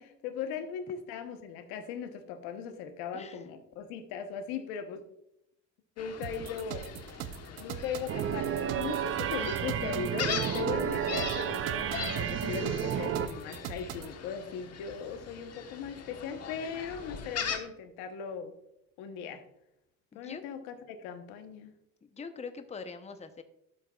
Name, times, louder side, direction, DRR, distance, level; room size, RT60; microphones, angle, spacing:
voice 1, 0.0-5.0 6.0-6.8 7.6-8.5 8.8-18.5 19.0-19.4 20.1-21.7, left 6 dB, 90° left, 7 dB, 1.0 m, -38 dB
Gull seagull, 6.0-17.6, left 7 dB, 45° left, 1.2 m, -41 dB
sound 1, 6.2-14.1, right 10 dB, 80° right, 0.7 m, -41 dB
sound 2, 8.1-13.3, right 9 dB, 40° right, 0.5 m, -32 dB
voice 2, 22.0-23.4, left 5 dB, 20° left, 9 dB, 0.7 m, -43 dB
12.0 x 7.5 x 2.3 m, 0.81 s
cardioid pair, 95°, 36 cm